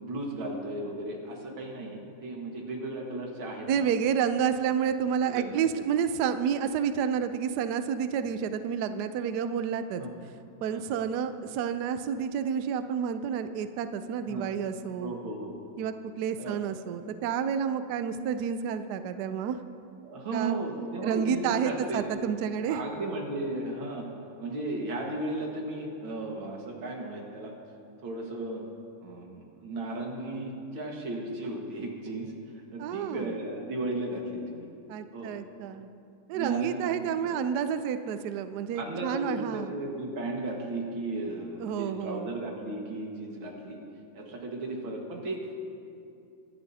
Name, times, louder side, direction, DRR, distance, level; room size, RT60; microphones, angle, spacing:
voice 1, 0.0-3.9 5.3-5.5 10.0-10.1 10.7-10.8 14.3-14.5 15.0-15.5 16.4-16.6 20.0-22.1 22.7-24.1 24.4-27.5 28.0-28.6 29.0-34.7 35.1-35.3 36.3-37.4 38.7-43.8 44.1-45.5, right 2 dB, 65° right, 0 dB, 2.4 m, -35 dB
voice 2, 3.7-10.0 10.6-15.1 15.8-19.6 20.3-20.6 21.0-22.8 32.8-33.3 34.9-35.9 36.3-39.7 41.6-42.3, right 7 dB, 85° right, 10 dB, 0.9 m, -30 dB
23.0 x 11.0 x 2.8 m, 2.5 s
omnidirectional pair, 2.4 m